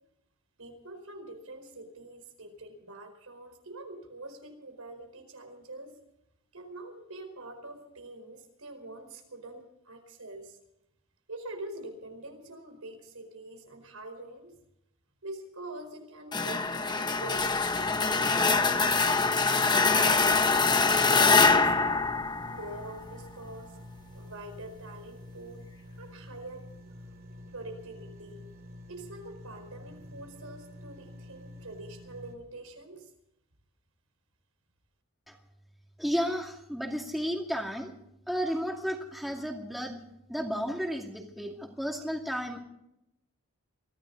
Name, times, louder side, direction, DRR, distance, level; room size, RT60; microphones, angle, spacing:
voice 1, 0.6-6.0 6.5-10.6 11.3-14.5 15.2-18.9 19.9-22.1 22.5-23.8 24.1-25.7 26.0-26.7 27.5-28.5 28.9-33.1, right 2 dB, 80° right, 6 dB, 4.6 m, -45 dB
sound 1, 16.3-23.0, left 4 dB, 20° left, 0.9 m, -24 dB
sound 2, 17.7-32.4, left 1 dB, 40° right, 2.9 m, -48 dB
voice 2, 36.0-37.9 38.3-40.0 40.3-42.6, equal, ahead, 0 dB, 2.4 m, -33 dB
23.0 x 15.5 x 4.0 m, 0.83 s
head